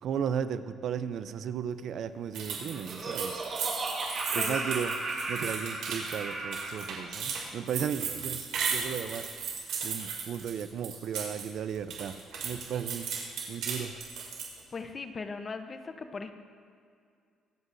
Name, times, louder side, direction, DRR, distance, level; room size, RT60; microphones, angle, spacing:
voice 1, 0.0-3.4 4.3-4.9 5.3-9.3 9.8-13.1 13.5-14.0, right 8 dB, 65° right, 12 dB, 0.5 m, -35 dB
sound 1, 2.3-11.5 11.7-14.6, right 6 dB, 80° right, 2.5 m, -35 dB
Laughter, 2.4-6.9, right 3 dB, 40° right, 3.0 m, -35 dB
voice 2, 14.7-16.3, left 4 dB, 35° left, 8 dB, 0.8 m, -38 dB
24.0 x 8.1 x 2.6 m, 2.3 s
cardioid pair, 95°, 0 cm